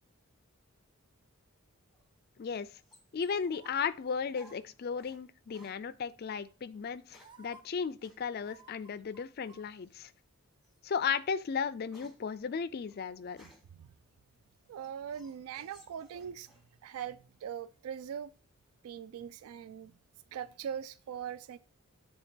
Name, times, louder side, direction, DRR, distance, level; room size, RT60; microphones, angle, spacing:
sound 1, 1.9-5.2 5.5-5.8 6.7-7.5 8.0-8.2 9.7-10.1 10.6-10.8 11.2-13.8 14.4-16.7 17.0-17.6, equal, ahead, 1.0 m, -62 dB
voice 1, 3.1-10.1 10.8-13.5, left 6 dB, 45° left, 0.3 m, -35 dB
sound 2, 3.3-3.7 4.3-4.6 5.5-5.9 6.8-6.9 7.2-7.6 8.4-9.6 10.0-10.1, right 4 dB, 20° right, 0.5 m, -57 dB
voice 2, 14.7-16.5 16.8-18.3 18.8-19.9 20.3-21.6, right 8 dB, 75° right, 0.3 m, -41 dB
9.1 x 3.5 x 4.4 m
head